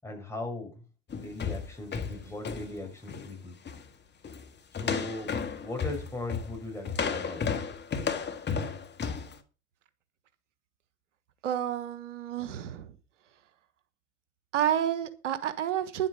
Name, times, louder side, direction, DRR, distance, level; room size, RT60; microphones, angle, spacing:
voice 1, 0.0-0.8 1.1-3.6 4.7-7.5, left 2 dB, 5° left, 6.0 m, -39 dB
sound 1, 1.1-3.3 3.6-3.9 4.2-4.5 4.7-9.3, left 6 dB, 30° left, 1.9 m, -33 dB
voice 2, 11.4-12.9 14.5-16.1, right 10 dB, 85° right, 1.4 m, -30 dB
10.5 x 8.1 x 6.8 m
hypercardioid pair, 80°, 35 cm